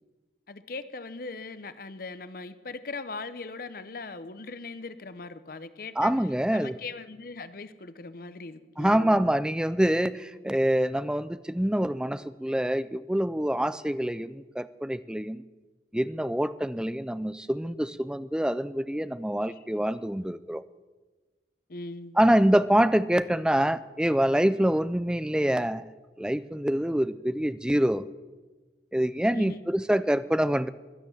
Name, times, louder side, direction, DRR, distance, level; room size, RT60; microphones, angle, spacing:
voice 1, 0.5-6.1 6.5-9.3 19.4-19.6 21.7-22.2 29.3-29.6, left 3 dB, 55° left, 13 dB, 0.8 m, -40 dB
voice 2, 6.0-6.7 8.8-15.4 15.9-20.6 22.2-25.8 26.2-28.1 28.9-30.7, right 1 dB, 5° right, 15 dB, 0.4 m, -25 dB
16.0 x 10.5 x 7.2 m, 1.3 s
head